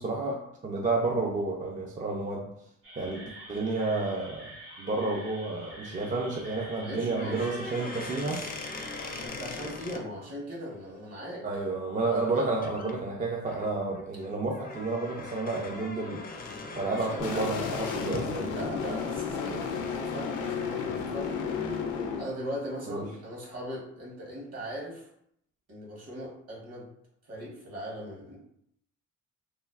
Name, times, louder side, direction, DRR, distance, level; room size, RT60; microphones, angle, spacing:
voice 1, 0.0-2.5 3.0-4.5 4.8-8.4 11.4-18.5 22.9-23.1, right 3 dB, 25° right, 0 dB, 0.4 m, -31 dB
sound 1, 2.8-9.3, right 1 dB, 80° right, 1.4 m, -47 dB
voice 2, 6.8-8.5 9.2-11.5 12.0-12.7 16.7-17.8 18.4-21.3 22.2-25.1 25.7-26.9 27.2-28.4, equal, 55° right, -4 dB, 1.5 m, -39 dB
sound 2, 7.1-10.0 12.2-12.3 12.6-12.9 13.4-18.3, left 3 dB, 30° left, 0.5 m, -41 dB
sound 3, 17.2-22.2, left 6 dB, 85° left, 0.5 m, -32 dB
3.1 x 2.3 x 2.4 m, 0.72 s
cardioid pair, 90°, 30 cm